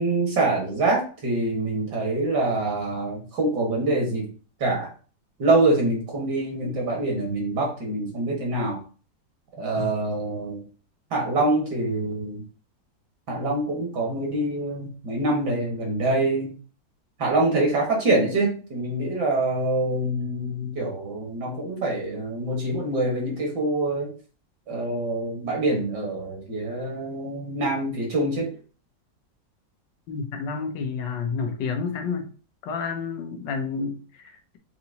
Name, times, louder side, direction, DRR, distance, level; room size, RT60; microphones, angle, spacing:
voice 1, 0.0-4.3 4.6-4.9 5.4-8.8 9.6-10.6 11.1-12.4 13.3-16.5 17.2-24.1 24.7-28.5, right 2 dB, 65° right, -1 dB, 2.1 m, -25 dB
voice 2, 30.1-32.3 32.6-34.6, left 5 dB, 85° left, 6 dB, 1.4 m, -30 dB
5.8 x 2.9 x 2.7 m, 0.38 s
omnidirectional pair, 2.0 m